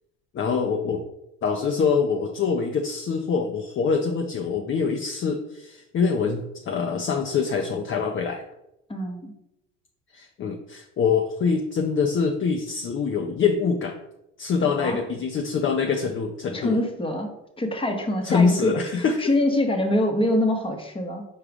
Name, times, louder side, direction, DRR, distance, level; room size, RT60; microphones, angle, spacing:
voice 1, 0.3-1.0 1.4-8.4 10.1-13.9 14.4-16.8 18.2-19.2, left 5 dB, 35° left, 3 dB, 0.5 m, -24 dB
voice 2, 8.9-9.3 14.6-15.0 16.5-17.3 17.6-18.8 19.2-21.3, left 1 dB, 15° left, 3 dB, 0.9 m, -24 dB
4.7 x 2.3 x 4.8 m, 0.86 s
hypercardioid pair, 65°, 35 cm